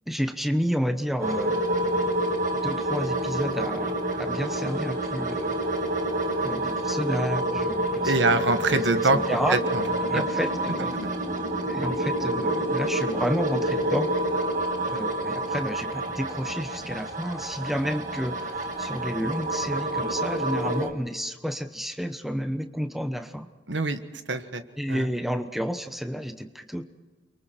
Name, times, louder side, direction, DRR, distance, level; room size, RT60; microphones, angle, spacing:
voice 1, 0.1-1.6 2.6-5.6 6.4-8.2 8.7-9.6 10.0-10.9 11.7-14.1 14.9-23.5 24.8-26.8, equal, ahead, 7 dB, 1.0 m, -30 dB
sound 1, 1.2-20.9, right 1 dB, 40° right, 1.7 m, -28 dB
voice 2, 8.0-9.8 10.1-10.2 10.9-11.1 23.7-24.0 24.3-24.6 24.9-25.1, right 3 dB, 75° right, 9 dB, 1.4 m, -24 dB
29.5 x 23.5 x 4.5 m, 1.3 s
head